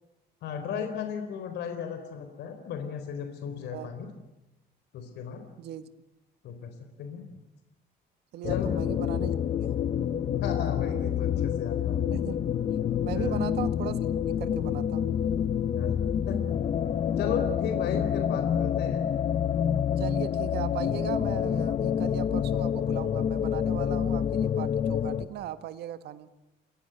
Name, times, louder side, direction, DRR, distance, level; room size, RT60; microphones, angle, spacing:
voice 1, 0.4-4.1 4.9-5.4 6.4-7.2 8.5-8.7 10.4-12.1 13.1-13.4 15.7-16.4 17.2-19.0, left 7 dB, 70° left, 6 dB, 4.3 m, -35 dB
voice 2, 5.6-5.9 8.3-9.8 12.1-12.4 13.0-14.0 14.3-15.1 20.0-26.3, right 11 dB, 65° right, 10 dB, 1.7 m, -38 dB
sound 1, 8.4-25.3, left 9 dB, 40° left, 0.9 m, -27 dB
30.0 x 21.5 x 8.3 m, 0.99 s
cardioid pair, 165°, 18 cm